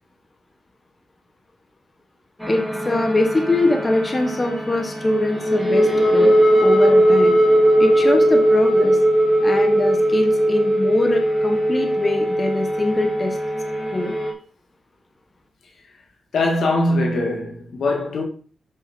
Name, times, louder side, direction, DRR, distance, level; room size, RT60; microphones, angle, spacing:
sound 1, 2.4-14.3, right 1 dB, 5° left, 2.1 m, -18 dB
voice 1, 2.5-6.3 6.6-7.4 7.8-9.0 9.4-13.4 13.9-14.1, left 2 dB, 25° left, 1.5 m, -23 dB
voice 2, 16.3-18.2, left 2 dB, 75° left, 2.1 m, -21 dB
7.4 x 6.0 x 4.4 m
cardioid pair, 80°, 0 cm